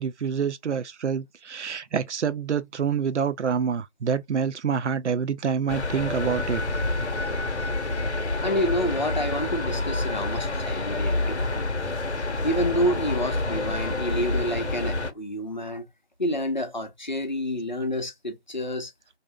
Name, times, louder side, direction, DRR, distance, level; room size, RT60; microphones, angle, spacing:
voice 1, 0.0-6.6, right 7 dB, 90° right, 0.5 m, -27 dB
sound 1, 5.7-15.1, left 2 dB, 80° left, 0.8 m, -28 dB
voice 2, 8.4-12.0 12.4-15.8 16.2-18.9, equal, 45° left, 0.6 m, -28 dB
2.6 x 2.1 x 2.3 m
figure-of-eight pair, 165°, 34 cm